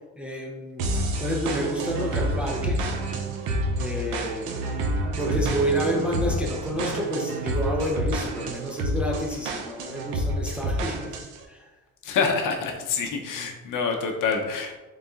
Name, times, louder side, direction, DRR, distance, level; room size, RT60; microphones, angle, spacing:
voice 1, 0.2-2.9 3.8-4.8 5.2-11.1 11.5-11.7, right 1 dB, 5° right, -1 dB, 0.6 m, -29 dB
sound 1, 0.8-11.4, right 1 dB, 80° right, 0.7 m, -28 dB
voice 2, 12.0-14.7, left 5 dB, 65° left, 3 dB, 0.7 m, -26 dB
3.9 x 3.8 x 2.4 m, 1.1 s
cardioid pair, 105°, 34 cm